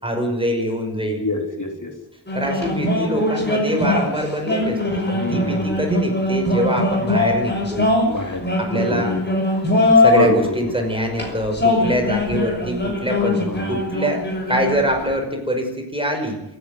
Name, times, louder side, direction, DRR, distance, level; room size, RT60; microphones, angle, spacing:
voice 1, 0.0-1.2 2.3-7.9 8.6-9.2 9.9-16.4, equal, 15° right, 3 dB, 5.5 m, -24 dB
voice 2, 1.0-1.9 5.1-5.8 8.0-9.2 10.1-10.4 13.2-13.8, left 2 dB, 45° left, 3 dB, 3.2 m, -26 dB
sound 1, 2.3-10.4 11.0-15.1, left 2 dB, 25° left, 6.0 m, -21 dB
27.0 x 10.5 x 9.3 m, 0.89 s
wide cardioid pair, 105°, 41 cm